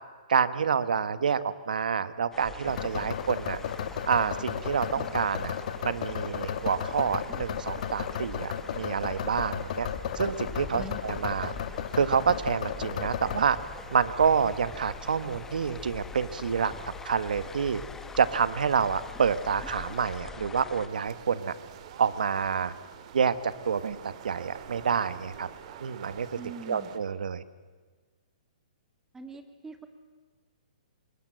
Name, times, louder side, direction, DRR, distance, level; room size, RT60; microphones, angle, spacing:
voice 1, 0.3-3.6 4.1-5.5 5.8-9.9 10.1-11.5 12.0-13.6 13.9-17.8 18.2-21.5 22.0-22.7 23.1-25.5 25.8-26.3 26.7-27.4, right 6 dB, 80° right, 14 dB, 1.2 m, -28 dB
sound 1, 2.3-20.9, left 4 dB, 10° left, 1.1 m, -44 dB
sound 2, 2.7-20.2, left 8 dB, 55° left, 1.6 m, -36 dB
sound 3, 20.9-27.0, right 9 dB, 50° right, 1.9 m, -47 dB
voice 2, 26.4-26.9 29.1-29.9, right 3 dB, 10° right, 7 dB, 1.8 m, -42 dB
22.5 x 20.0 x 7.7 m, 1.4 s
hypercardioid pair, 140°, 4 cm